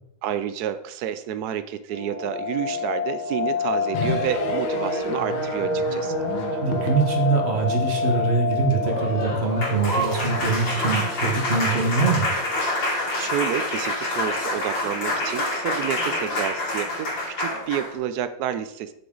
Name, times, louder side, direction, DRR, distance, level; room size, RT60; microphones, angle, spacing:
voice 1, 0.2-6.2 12.8-18.9, right 9 dB, 75° right, 11 dB, 0.9 m, -30 dB
sound 1, 1.9-12.7 13.0-13.1 13.4-13.6 14.1-14.5 15.0-15.1 15.3-15.8 16.1-16.2, left 2 dB, 50° left, 2.0 m, -29 dB
sound 2, 3.9-10.3, left 5 dB, 85° left, 1.9 m, -34 dB
voice 2, 6.6-12.3, right 4 dB, 35° right, 1 dB, 1.7 m, -23 dB
Applause, 8.8-18.0, left 1 dB, 65° left, 3.7 m, -27 dB
8.1 x 6.9 x 3.9 m, 0.77 s
omnidirectional pair, 2.2 m